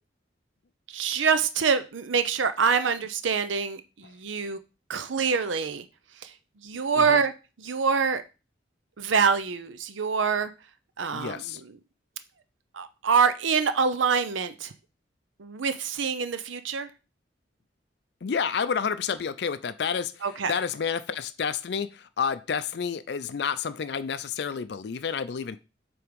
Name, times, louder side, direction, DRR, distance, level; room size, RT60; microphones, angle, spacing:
voice 1, 0.9-4.6 4.9-5.8 6.2-6.3 6.6-7.3 7.6-8.2 9.0-10.5 11.0-11.4 12.7-14.7 15.4-16.9 20.2-20.5, right 5 dB, 90° right, 11 dB, 0.6 m, -25 dB
voice 2, 11.1-11.6 18.2-25.6, left 6 dB, 60° left, 13 dB, 0.4 m, -30 dB
7.8 x 3.5 x 5.1 m, 0.30 s
head